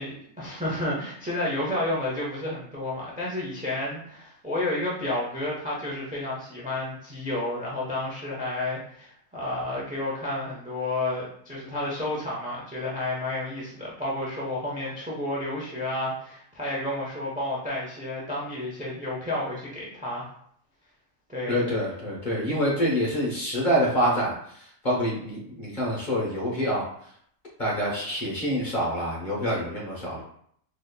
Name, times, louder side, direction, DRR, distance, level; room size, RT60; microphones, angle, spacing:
voice 1, 0.0-20.3 21.3-21.6, left 1 dB, 10° right, -5 dB, 0.6 m, -31 dB
voice 2, 21.5-26.8 27.6-30.2, equal, 35° left, -5 dB, 1.0 m, -26 dB
4.0 x 2.9 x 2.2 m, 0.65 s
omnidirectional pair, 1.6 m